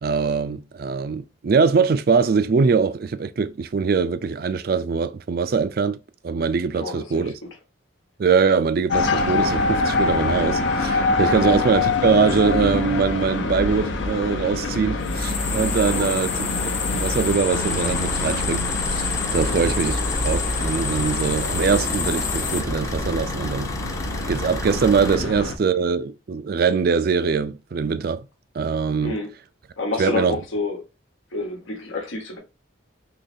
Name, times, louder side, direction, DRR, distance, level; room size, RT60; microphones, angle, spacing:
voice 1, 0.0-6.0 6.2-7.3 8.2-18.6 18.9-23.7 24.3-28.3 28.5-29.2 30.0-30.3, right 5 dB, 50° right, 0.3 m, -22 dB
voice 2, 6.8-7.5 11.3-11.5 15.9-16.1 19.4-19.7 29.0-29.3 29.8-30.8 31.3-32.4, left 3 dB, 90° left, 1.2 m, -29 dB
sound 1, 8.9-25.6, left 3 dB, 75° left, 0.7 m, -25 dB
sound 2, 15.0-22.6, left 5 dB, 35° left, 0.9 m, -28 dB
sound 3, 17.5-25.1, left 2 dB, 15° left, 0.5 m, -32 dB
3.9 x 3.1 x 2.6 m
head